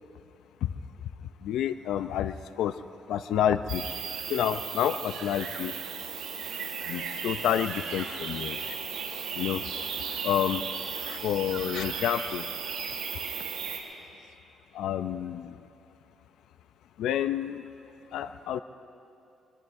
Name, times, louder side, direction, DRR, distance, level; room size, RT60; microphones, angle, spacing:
voice 1, 1.4-2.8 3.1-3.8 4.3-5.7 6.9-8.8 9.3-9.6 10.2-10.6 10.9-12.5 14.7-15.6 17.0-17.7 18.1-18.6, left 10 dB, 80° left, 11 dB, 0.4 m, -29 dB
sound 1, 3.7-13.8, right 6 dB, 80° right, 3.2 m, -35 dB
25.0 x 22.0 x 2.6 m, 2.7 s
cardioid pair, 90°, 0 cm